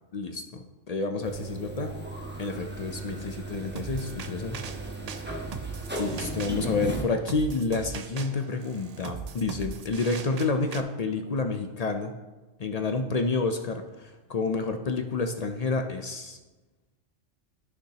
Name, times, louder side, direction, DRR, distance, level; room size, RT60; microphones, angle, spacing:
voice 1, 0.1-1.9 2.4-4.6 6.0-12.1 12.6-16.4, left 3 dB, 55° left, 6 dB, 0.4 m, -29 dB
sound 1, 1.2-7.0, right 2 dB, 10° right, 0.9 m, -36 dB
sound 2, 3.8-10.8, right 6 dB, 90° right, 0.3 m, -40 dB
13.0 x 5.9 x 2.9 m, 1.2 s
omnidirectional pair, 1.3 m